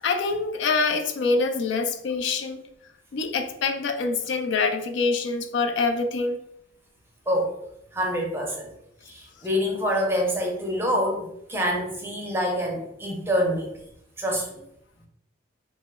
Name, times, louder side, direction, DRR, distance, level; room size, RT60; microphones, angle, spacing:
voice 1, 0.0-2.6 3.1-6.4, left 4 dB, 75° left, 7 dB, 0.3 m, -25 dB
voice 2, 7.9-8.7 9.0-13.7 14.2-14.6, equal, 10° right, 0 dB, 0.5 m, -26 dB
2.9 x 2.1 x 3.6 m, 0.77 s
head